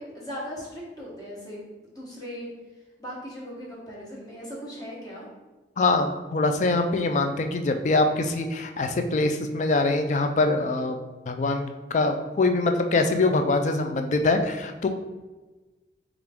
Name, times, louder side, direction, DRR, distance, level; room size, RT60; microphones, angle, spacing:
voice 1, 0.0-2.5 3.0-5.3, equal, 20° left, -6 dB, 1.0 m, -38 dB
voice 2, 5.8-11.0 11.3-14.9, left 2 dB, 40° left, 6 dB, 0.3 m, -24 dB
4.5 x 2.5 x 3.4 m, 1.2 s
head